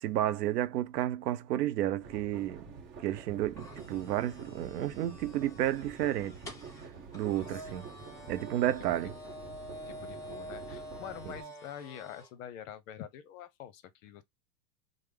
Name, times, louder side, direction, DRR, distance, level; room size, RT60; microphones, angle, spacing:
voice 1, 0.0-2.6 3.0-6.4 7.1-7.9 8.3-9.1, right 13 dB, 70° right, 0.7 m, -31 dB
sound 1, 2.0-11.4, right 5 dB, 25° right, 0.8 m, -48 dB
sound 2, 3.6-12.3, equal, 10° left, 0.4 m, -48 dB
voice 2, 8.4-8.7 9.7-14.2, left 10 dB, 55° left, 0.7 m, -46 dB
3.3 x 2.0 x 3.3 m
hypercardioid pair, 120°, 49 cm